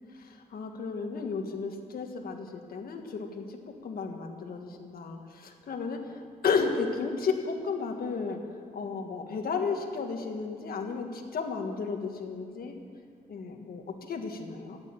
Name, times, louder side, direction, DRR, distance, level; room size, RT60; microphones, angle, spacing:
voice 1, 0.1-3.6 3.8-8.4 8.7-12.8 13.3-14.8, left 5 dB, 80° left, 3 dB, 1.6 m, -33 dB
14.0 x 9.2 x 9.1 m, 2.3 s
wide cardioid pair, 130°, 15 cm